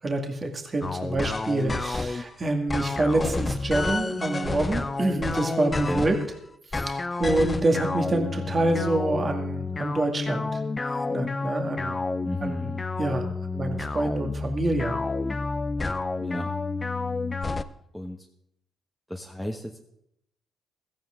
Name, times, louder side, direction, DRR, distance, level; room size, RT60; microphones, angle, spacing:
voice 1, 0.0-6.2 6.9-10.6 10.9-12.0 12.4-12.7 13.0-14.9, right 2 dB, 30° right, 3 dB, 2.1 m, -27 dB
sound 1, 0.8-2.3 2.7-6.3 6.7-17.6, left 3 dB, 25° left, 0.7 m, -30 dB
voice 2, 12.2-12.8 16.2-16.5 17.9-18.3 19.1-19.8, equal, ahead, 0 dB, 1.3 m, -34 dB
16.0 x 15.0 x 3.8 m, 0.77 s
cardioid pair, 90°, 0 cm